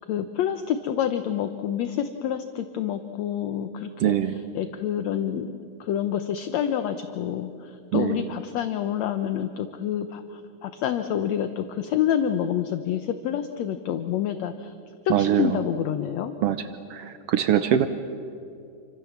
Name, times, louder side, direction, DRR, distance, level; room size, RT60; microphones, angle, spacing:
voice 1, 0.1-14.7 15.1-16.3, left 9 dB, 70° left, 9 dB, 1.9 m, -28 dB
voice 2, 4.0-4.4 7.9-8.3 15.1-15.6 16.4-16.6 16.9-17.9, right 10 dB, 85° right, 10 dB, 1.3 m, -23 dB
29.0 x 24.5 x 7.3 m, 2.6 s
omnidirectional pair, 3.8 m